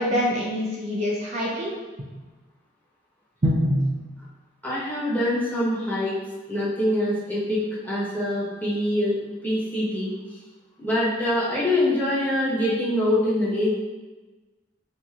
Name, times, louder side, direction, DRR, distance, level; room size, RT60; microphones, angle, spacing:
voice 1, 0.0-1.7 3.4-3.9, equal, 40° right, -4 dB, 0.6 m, -24 dB
voice 2, 4.6-6.2 6.5-9.2 9.4-10.1 10.8-13.7, left 1 dB, 10° left, -9 dB, 1.1 m, -24 dB
4.4 x 2.7 x 2.4 m, 1.2 s
head